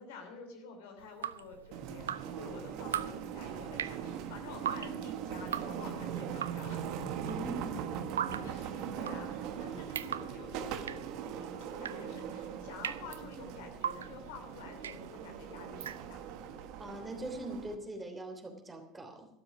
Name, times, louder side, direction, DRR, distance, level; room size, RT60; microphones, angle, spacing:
voice 1, 0.0-7.1 8.4-16.2, left 5 dB, 70° left, 4 dB, 3.0 m, -49 dB
Drip, 1.0-16.4, right 9 dB, 80° right, 0.4 m, -41 dB
sound 1, 1.7-17.7, right 8 dB, 60° right, 1.4 m, -41 dB
voice 2, 7.2-7.8 16.8-19.3, right 1 dB, 20° right, 5 dB, 3.2 m, -41 dB
12.5 x 12.5 x 6.0 m, 0.82 s
hypercardioid pair, 75°, 0 cm